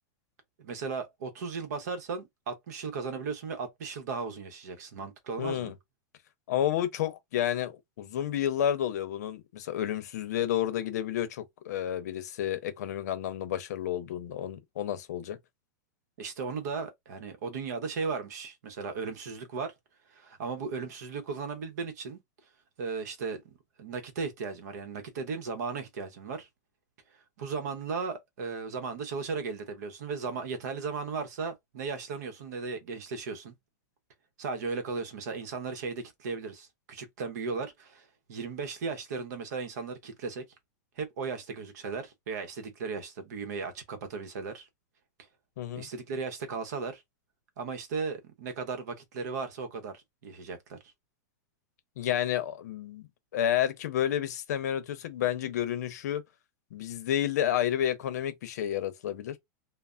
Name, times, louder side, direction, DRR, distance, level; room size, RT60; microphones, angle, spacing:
voice 1, 0.6-5.7 16.2-19.7 20.1-22.2 22.8-26.5 27.4-33.5 34.4-40.4 41.0-44.7 45.7-47.0 47.6-50.8, right 4 dB, 65° right, 0.8 m, -36 dB
voice 2, 5.4-5.7 6.5-15.4 45.6-45.9 52.0-53.1 53.3-56.2 56.7-59.4, left 11 dB, 65° left, 0.6 m, -30 dB
3.3 x 2.0 x 2.4 m
supercardioid pair, 170°, 10 cm